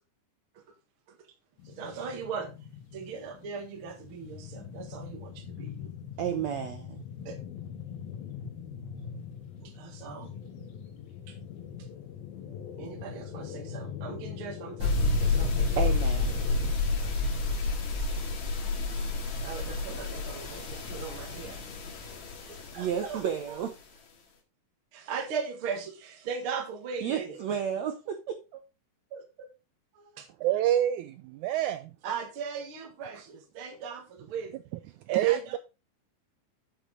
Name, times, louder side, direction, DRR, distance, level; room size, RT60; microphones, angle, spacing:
sound 1, 1.6-16.7, left 8 dB, 90° left, 3.6 m, -42 dB
voice 1, 1.6-2.5 2.9-5.9 7.3-7.4 9.6-10.3 11.3-11.4 12.8-15.8 19.4-21.7 22.5-23.6 24.9-27.6 29.1-29.2 29.9-30.3 32.0-34.6 35.1-35.6, right 6 dB, 45° right, 2.0 m, -39 dB
voice 2, 6.2-7.0 15.8-16.4 22.8-23.7 27.0-28.6, right 8 dB, 70° right, 1.7 m, -32 dB
sound 2, 14.8-23.2, left 3 dB, 55° left, 2.9 m, -29 dB
voice 3, 30.4-31.9 35.1-35.6, right 12 dB, 85° right, 1.7 m, -26 dB
9.0 x 7.1 x 3.8 m
omnidirectional pair, 4.2 m